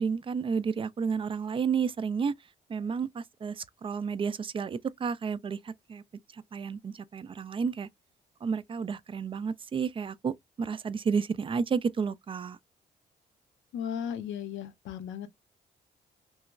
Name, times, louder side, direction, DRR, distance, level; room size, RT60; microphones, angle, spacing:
voice 1, 0.0-2.3 2.7-6.0 6.3-7.9 8.4-12.6, right 6 dB, 25° right, 0.3 m, -31 dB
voice 2, 13.7-15.3, left 8 dB, 65° left, 0.6 m, -35 dB
3.1 x 2.9 x 2.2 m
hypercardioid pair, 45°, 21 cm